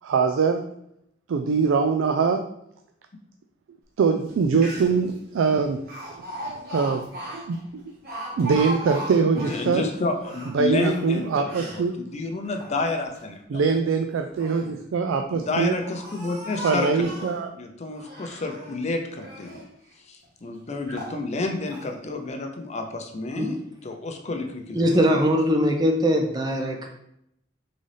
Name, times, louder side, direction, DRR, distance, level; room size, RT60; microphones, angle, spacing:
voice 1, 0.0-0.6 1.3-2.4 4.0-6.2 6.7-7.1 7.5-7.8 8.4-9.8 10.5-12.0 13.5-15.8 16.6-17.5, right 5 dB, 85° right, 6 dB, 0.3 m, -23 dB
Speech, 4.3-4.4 4.6-5.1 5.9-9.7 10.2-11.8 12.4-13.2 14.1-14.7 15.4-17.4 18.0-18.8 19.2-19.7 20.2-20.3 20.9-21.2 21.7-21.9, equal, 55° right, 1.2 m, -37 dB
voice 2, 9.3-13.7 14.6-14.8 15.3-19.6 20.0-25.0, left 2 dB, 35° left, 4 dB, 0.5 m, -30 dB
voice 3, 24.8-26.9, equal, 20° right, 2 dB, 0.4 m, -21 dB
3.9 x 3.8 x 3.3 m, 0.76 s
head